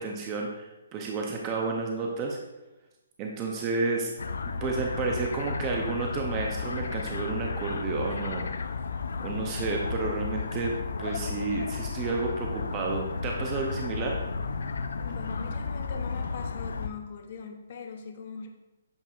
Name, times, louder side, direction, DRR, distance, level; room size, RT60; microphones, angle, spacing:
voice 1, 0.0-2.4 3.2-4.1 4.5-8.5 9.2-14.2, right 4 dB, 25° right, 0 dB, 0.5 m, -31 dB
sound 1, 4.2-16.9, left 4 dB, 80° left, 0.3 m, -33 dB
voice 2, 15.0-18.5, left 5 dB, 50° left, 4 dB, 0.7 m, -40 dB
7.8 x 2.8 x 2.4 m, 1.0 s
hypercardioid pair, 155°, 0 cm